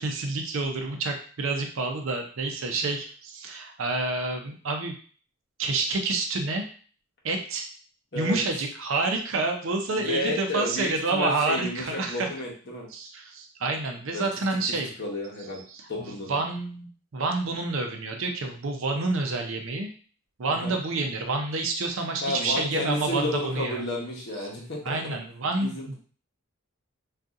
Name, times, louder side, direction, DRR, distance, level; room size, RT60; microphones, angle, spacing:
voice 1, 0.0-4.9 5.6-6.7 7.2-7.6 8.1-12.3 12.9-14.9 15.7-19.9 20.4-23.8 24.8-25.9, right 3 dB, 65° right, 4 dB, 0.5 m, -28 dB
voice 2, 9.9-12.9 14.1-14.4 15.0-15.6 15.9-16.4 20.5-20.7 22.2-25.2 25.5-25.9, left 2 dB, 50° left, -3 dB, 0.9 m, -31 dB
2.7 x 2.4 x 3.6 m, 0.42 s
head